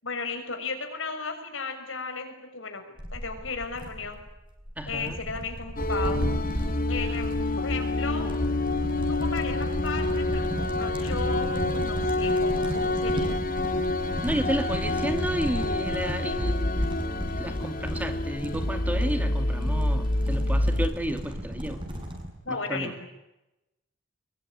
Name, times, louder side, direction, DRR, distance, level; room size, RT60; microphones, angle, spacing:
voice 1, 0.0-2.8 3.1-4.2 4.9-6.2 6.9-8.3 9.1-13.3 22.4-23.1, left 4 dB, 80° left, 6 dB, 6.1 m, -35 dB
sound 1, 3.0-22.3, equal, 25° right, 7.8 m, -36 dB
voice 2, 4.8-5.2 14.2-16.7 17.2-21.8 22.5-22.9, right 1 dB, 10° right, 7 dB, 2.4 m, -32 dB
sound 2, 5.1-5.5 5.8-7.9 8.3-8.4 9.0-9.1 9.3-9.4 9.8-9.9 11.7-11.9, equal, 70° right, 4.6 m, -37 dB
sound 3, 5.8-20.9, left 2 dB, 45° left, 2.1 m, -27 dB
24.5 x 22.5 x 10.0 m, 0.96 s
head